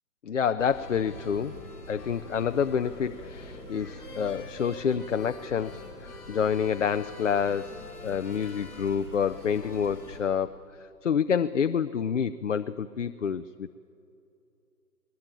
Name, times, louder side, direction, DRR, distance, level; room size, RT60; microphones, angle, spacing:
voice 1, 0.2-1.6 1.9-7.7 8.0-10.5 11.0-13.9, left 7 dB, 50° left, 11 dB, 0.6 m, -28 dB
sound 1, 0.6-10.2, left 1 dB, 5° left, 4.9 m, -43 dB
21.0 x 19.5 x 9.0 m, 2.6 s
hypercardioid pair, 165°, 47 cm